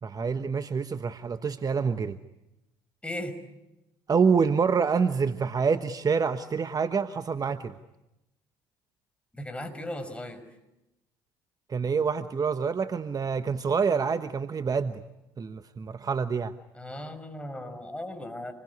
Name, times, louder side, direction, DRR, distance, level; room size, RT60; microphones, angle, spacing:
voice 1, 0.0-2.2 4.1-7.8 11.7-15.0 15.4-16.5, right 5 dB, 35° right, 11 dB, 1.2 m, -27 dB
voice 2, 3.0-3.3 9.3-10.4 16.7-18.5, left 1 dB, 10° left, 7 dB, 5.8 m, -37 dB
27.5 x 22.0 x 9.7 m, 0.93 s
hypercardioid pair, 60°, 11 cm